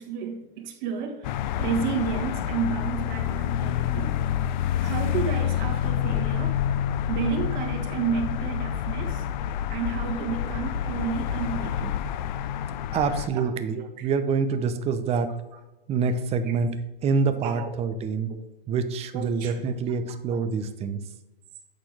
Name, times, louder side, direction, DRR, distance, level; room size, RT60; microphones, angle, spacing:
voice 1, 0.0-4.2 4.8-6.6 7.1-9.2 9.7-12.0 13.4-14.1 17.4-17.7 19.1-19.6 20.3-20.4, right 7 dB, 50° right, 3 dB, 1.8 m, -31 dB
sound 1, 1.2-13.3, left 10 dB, 50° left, 0.5 m, -28 dB
voice 2, 12.9-15.3 15.9-16.7 17.0-18.3 18.7-21.0, right 5 dB, 20° right, 9 dB, 0.7 m, -26 dB
8.4 x 4.2 x 4.8 m, 1.0 s
hypercardioid pair, 125°, 29 cm